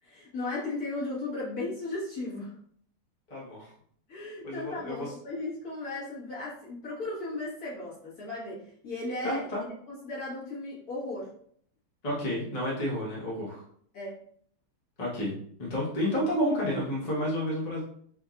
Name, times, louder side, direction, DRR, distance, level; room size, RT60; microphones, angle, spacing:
voice 1, 0.0-2.5 4.1-9.4 9.9-11.3 13.9-14.2, left 2 dB, 45° left, -7 dB, 1.9 m, -36 dB
voice 2, 3.3-3.7 4.4-5.1 9.2-9.6 12.0-13.6 15.0-15.3 15.6-17.8, equal, 25° left, -6 dB, 0.9 m, -30 dB
6.1 x 2.7 x 2.5 m, 0.62 s
omnidirectional pair, 2.3 m